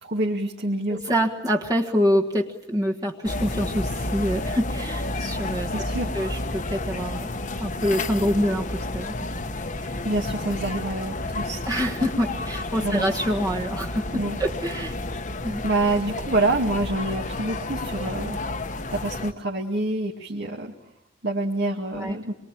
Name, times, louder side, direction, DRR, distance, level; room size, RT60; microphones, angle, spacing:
voice 1, 0.0-1.0 5.7-6.1 9.8-11.6 12.8-13.1 14.1-14.4 15.6-18.4 18.9-20.7 21.2-22.3, right 2 dB, 60° right, 0 dB, 2.3 m, -27 dB
voice 2, 0.9-5.7 6.1-7.3 7.6-9.3 11.7-14.9 15.4-15.6 21.9-22.2, equal, 20° right, 0 dB, 1.5 m, -26 dB
sound 1, 3.2-19.3, left 2 dB, 40° left, 1.3 m, -31 dB
26.5 x 23.0 x 8.9 m, 0.83 s
head